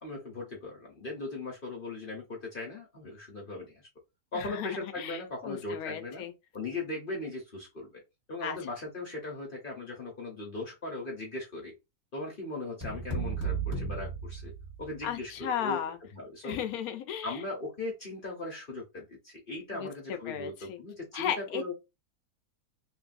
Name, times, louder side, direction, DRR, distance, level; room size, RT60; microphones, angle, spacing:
voice 1, 0.0-3.9 4.3-6.2 6.5-7.9 8.3-11.7 12.1-14.5 14.8-15.8 16.1-16.6 17.2-21.7, left 2 dB, 40° left, 0.8 m, -38 dB
voice 2, 4.3-6.3 8.4-8.6 15.0-16.0 16.4-17.4 19.7-20.8 21.1-21.7, left 8 dB, 70° left, 0.9 m, -35 dB
sound 1, 12.8-15.1, right 4 dB, 10° right, 1.0 m, -34 dB
3.1 x 2.6 x 2.5 m
omnidirectional pair, 1.8 m